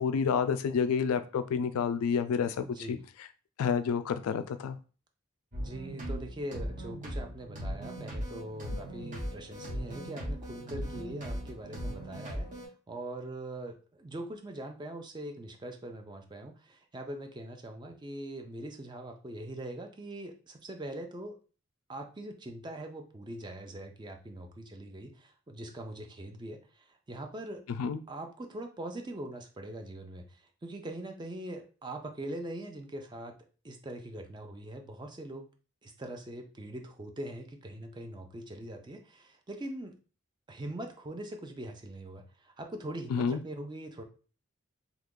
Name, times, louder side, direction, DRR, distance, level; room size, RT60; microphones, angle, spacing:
voice 1, 0.0-3.0 3.6-4.8 27.8-28.0 43.1-43.4, left 6 dB, 85° left, 11 dB, 0.3 m, -29 dB
voice 2, 2.6-3.0 5.6-21.4 21.9-27.6 28.1-33.3 33.6-35.5 35.8-40.0 40.5-44.0, right 1 dB, 20° right, 5 dB, 0.4 m, -42 dB
sound 1, 5.5-12.7, equal, 35° right, 1.1 m, -38 dB
2.8 x 2.4 x 3.6 m, 0.36 s
head